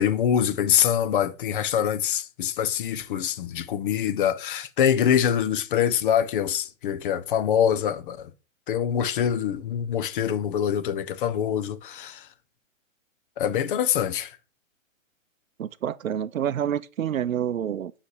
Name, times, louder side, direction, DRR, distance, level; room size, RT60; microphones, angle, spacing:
voice 1, 0.0-8.3 8.7-12.3 13.4-14.4, left 9 dB, 40° left, 0.6 m, -24 dB
voice 2, 15.6-17.9, right 9 dB, 80° right, 0.6 m, -28 dB
5.6 x 5.0 x 6.3 m
hypercardioid pair, 125°, 40 cm